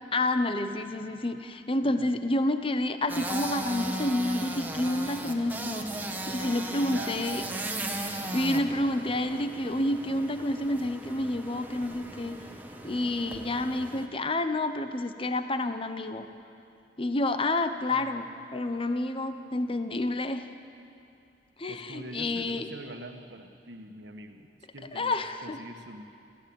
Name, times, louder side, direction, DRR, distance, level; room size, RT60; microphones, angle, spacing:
voice 1, 0.1-5.9 6.3-7.4 8.0-12.4 12.8-16.3 17.0-18.2 18.5-20.5 21.6-22.7 24.9-25.6, left 1 dB, 30° left, 8 dB, 0.9 m, -29 dB
sound 1, 3.1-14.0, right 1 dB, 10° right, 1.6 m, -37 dB
voice 2, 6.0-7.4 17.9-18.2 21.7-26.0, right 1 dB, 80° right, 5 dB, 1.8 m, -45 dB
29.0 x 14.5 x 9.0 m, 2.5 s
head